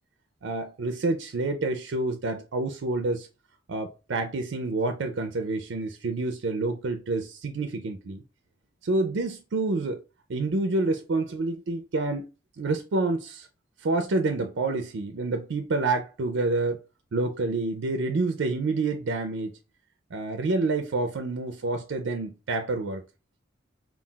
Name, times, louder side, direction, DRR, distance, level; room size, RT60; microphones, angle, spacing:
voice 1, 0.4-3.3 3.7-8.2 8.8-10.0 10.3-12.3 12.6-13.5 13.8-16.8 17.1-19.6 20.1-23.0, right 3 dB, 65° right, 0.4 m, -28 dB
5.4 x 2.4 x 2.3 m
head